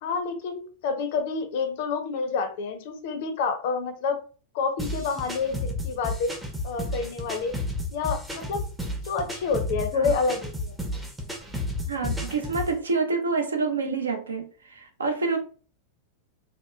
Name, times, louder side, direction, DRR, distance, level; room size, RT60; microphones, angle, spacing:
voice 1, 0.0-4.2 4.5-6.3 6.6-7.5 7.9-8.6 9.0-10.8, left 5 dB, 50° left, 0.5 m, -28 dB
sound 1, 4.8-12.7, left 1 dB, 5° right, 0.5 m, -32 dB
voice 2, 11.9-15.4, right 4 dB, 75° right, 0.5 m, -27 dB
2.8 x 2.1 x 2.2 m
figure-of-eight pair, 90°, 0 cm